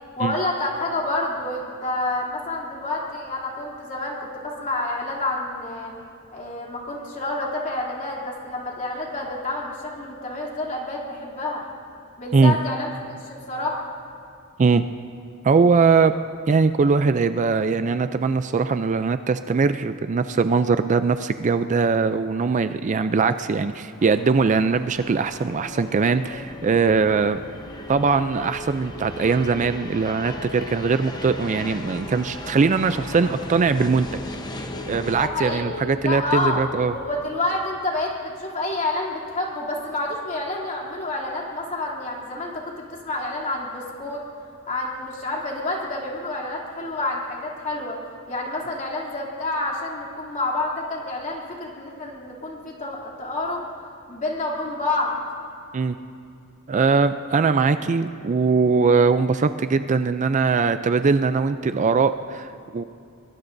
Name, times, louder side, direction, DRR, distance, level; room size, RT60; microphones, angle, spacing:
voice 1, 0.2-5.9 6.3-11.6 12.2-12.9 13.2-13.8 35.1-36.6 36.9-44.2 44.7-48.0 48.3-53.6 54.1-55.1, left 2 dB, 35° left, -3 dB, 2.9 m, -28 dB
voice 2, 15.4-16.1 16.5-27.4 27.9-34.1 34.9-36.9 55.7-56.0 56.7-62.8, right 4 dB, 35° right, 10 dB, 0.4 m, -21 dB
sound 1, 24.0-35.3, left 1 dB, 20° left, 0.9 m, -39 dB
sound 2, 25.5-37.1, left 2 dB, 85° left, 1.9 m, -40 dB
24.0 x 23.0 x 2.6 m, 2.6 s
head